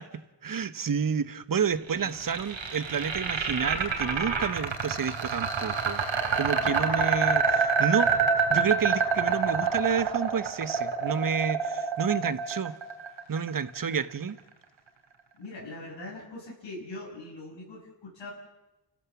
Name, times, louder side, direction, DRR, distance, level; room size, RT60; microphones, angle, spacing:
voice 1, 0.4-6.0 6.4-8.2 8.5-12.8 13.3-14.4, right 6 dB, 45° right, 1.2 m, -29 dB
voice 2, 1.7-2.1 6.6-6.9 15.4-18.3, left 2 dB, 85° left, 6.9 m, -41 dB
marble roll, 1.9-13.9, right 5 dB, 80° right, 3.2 m, -27 dB
29.5 x 15.0 x 7.1 m
cardioid pair, 55°, 45 cm